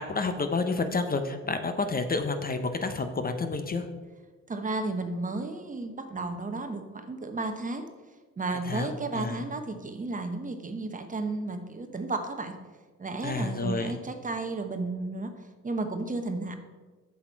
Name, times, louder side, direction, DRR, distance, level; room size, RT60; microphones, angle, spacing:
voice 1, 0.0-3.9 8.6-9.4 13.2-13.9, left 3 dB, 30° left, 7 dB, 0.7 m, -30 dB
voice 2, 4.5-7.9 8.4-12.5 13.0-15.3 15.6-16.6, right 3 dB, 25° right, 6 dB, 0.8 m, -33 dB
8.0 x 6.3 x 4.5 m, 1.4 s
cardioid pair, 90°, 30 cm